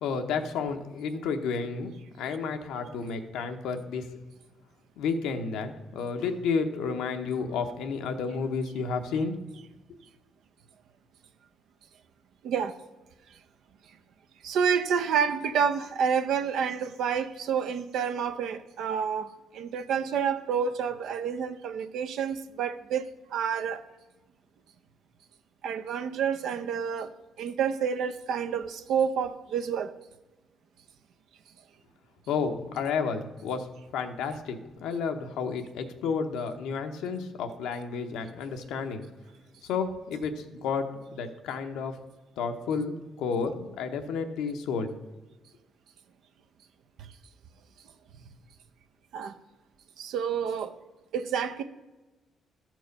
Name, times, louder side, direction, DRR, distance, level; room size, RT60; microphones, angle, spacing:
voice 1, 0.0-4.1 5.0-9.3 32.3-39.0 39.6-42.0 42.4-44.9, left 5 dB, 90° left, 0.8 m, -31 dB
voice 2, 12.4-12.8 14.4-23.1 23.3-23.8 25.6-27.1 27.4-29.9 49.1-49.3 50.0-50.7 51.1-51.6, right 7 dB, 80° right, 0.6 m, -29 dB
13.0 x 4.6 x 5.2 m
cardioid pair, 90°, 0 cm